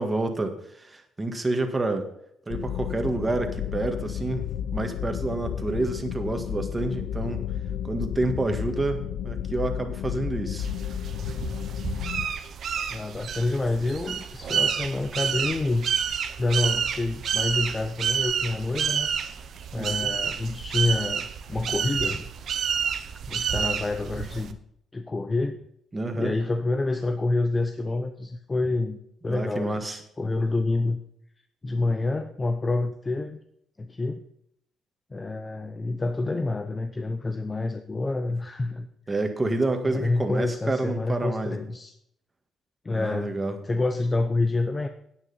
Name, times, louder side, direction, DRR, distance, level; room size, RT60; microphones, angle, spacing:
voice 1, 0.0-2.1 2.5-7.4 7.8-10.7 19.7-20.1 25.9-26.3 29.3-30.0 39.1-41.6 42.9-43.6, right 2 dB, 20° right, 6 dB, 1.8 m, -28 dB
sound 1, 2.5-12.3, left 10 dB, 75° left, 0.6 m, -32 dB
sound 2, 10.6-24.5, right 7 dB, 60° right, 1.0 m, -29 dB
voice 2, 12.9-15.9 16.4-19.1 19.7-22.3 23.3-24.6 24.9-25.6 26.1-29.0 29.2-31.0 31.6-33.4 33.8-34.2 35.1-39.2 39.8-41.9 42.8-43.4 43.6-44.9, left 2 dB, 25° left, 8 dB, 0.8 m, -28 dB
9.6 x 9.4 x 5.6 m, 0.73 s
cardioid pair, 100°, 0 cm